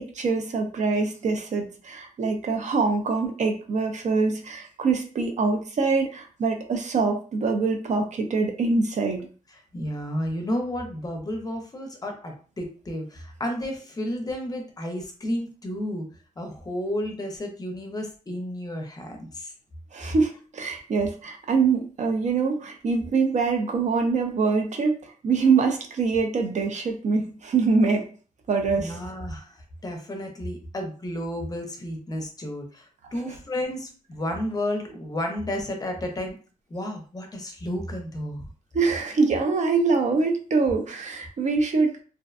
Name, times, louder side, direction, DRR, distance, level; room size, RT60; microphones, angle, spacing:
voice 1, 0.0-9.3 19.9-28.1 28.5-29.0 33.2-33.3 38.7-42.0, right 4 dB, 55° right, 4 dB, 0.5 m, -24 dB
voice 2, 9.7-16.1 16.4-19.5 28.8-36.4 36.7-38.5, left 1 dB, 25° left, 3 dB, 0.5 m, -32 dB
2.5 x 2.1 x 2.4 m, 0.39 s
wide cardioid pair, 140°, 14 cm